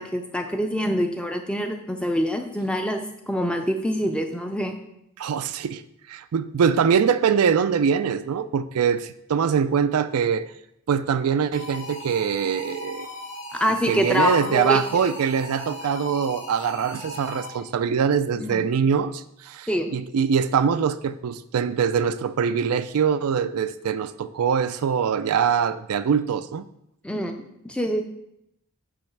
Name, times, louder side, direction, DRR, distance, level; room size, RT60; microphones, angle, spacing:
voice 1, 0.0-4.8 13.5-15.1 18.4-18.7 19.7-19.9 27.0-28.0, equal, 5° left, 5 dB, 0.5 m, -25 dB
voice 2, 5.2-5.8 6.1-10.5 10.9-13.1 13.9-26.6, right 7 dB, 90° right, 13 dB, 0.4 m, -23 dB
sound 1, 11.5-17.8, left 1 dB, 55° left, 2.3 m, -38 dB
8.6 x 3.1 x 5.9 m, 0.80 s
head